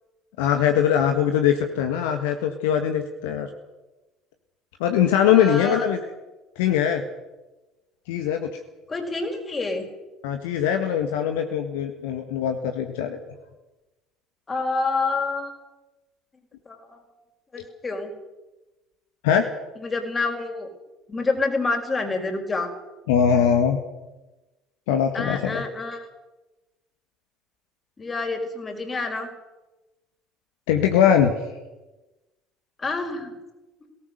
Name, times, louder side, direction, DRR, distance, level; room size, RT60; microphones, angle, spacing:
voice 1, 0.4-3.5 4.8-6.0 6.5-7.0 8.1-8.5 10.2-13.2 19.2-19.5 23.1-23.8 24.9-25.6 30.7-31.4, left 9 dB, 70° left, 6 dB, 1.6 m, -21 dB
voice 2, 5.2-5.9 8.9-9.9 14.5-15.6 16.7-17.1 17.5-18.1 19.8-20.7 21.1-22.7 25.1-26.1 28.0-29.3 32.8-33.3, left 3 dB, 25° left, 5 dB, 5.0 m, -27 dB
22.5 x 18.0 x 6.6 m, 1.1 s
figure-of-eight pair, 60°, 0 cm